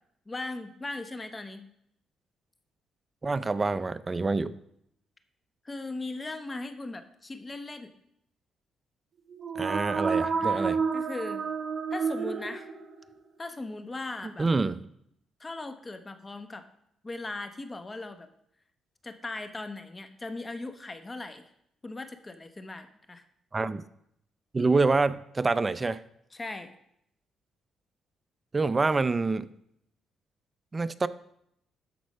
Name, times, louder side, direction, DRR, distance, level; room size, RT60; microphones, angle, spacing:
voice 1, 0.3-1.7 5.6-7.9 10.3-11.5 11.9-12.7 13.4-14.5 15.4-16.7 17.0-18.3 19.0-21.4 21.8-23.2 26.3-26.7, left 2 dB, 25° left, 9 dB, 0.9 m, -38 dB
voice 2, 3.2-4.6 9.6-10.8 14.4-14.8 23.5-23.8 24.5-26.0 28.5-29.5 30.7-31.1, right 3 dB, 25° right, 15 dB, 0.5 m, -26 dB
sound 1, 9.3-13.1, right 5 dB, 45° right, 1.2 m, -30 dB
13.0 x 4.5 x 5.4 m, 0.75 s
cardioid pair, 90°, 0 cm